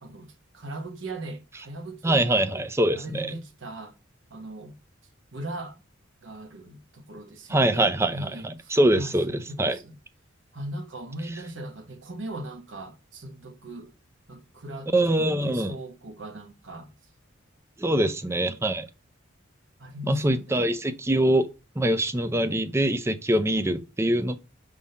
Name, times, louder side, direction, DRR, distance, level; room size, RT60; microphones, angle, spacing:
voice 1, 0.0-2.7 2.9-3.9 4.3-4.8 5.3-5.8 6.2-9.1 9.5-10.0 10.5-13.9 14.3-16.9 18.0-18.6 19.8-20.7, right 1 dB, 65° right, 1.1 m, -39 dB
voice 2, 2.0-3.3 7.5-9.8 14.9-15.7 17.8-18.9 20.1-21.5 21.8-24.4, right 1 dB, 15° right, 0.4 m, -24 dB
5.3 x 3.6 x 5.4 m
head